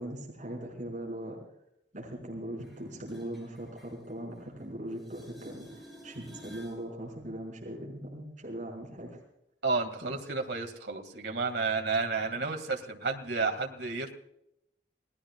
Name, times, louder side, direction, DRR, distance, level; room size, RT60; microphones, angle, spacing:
voice 1, 0.0-1.4 1.9-9.2, right 1 dB, 45° right, -2 dB, 5.4 m, -40 dB
sound 1, 2.6-4.7 4.9-6.8 12.6-12.7, equal, ahead, 7.5 m, -52 dB
voice 2, 9.6-14.1, right 4 dB, 80° right, 4 dB, 2.1 m, -31 dB
29.5 x 18.5 x 2.4 m, 0.78 s
head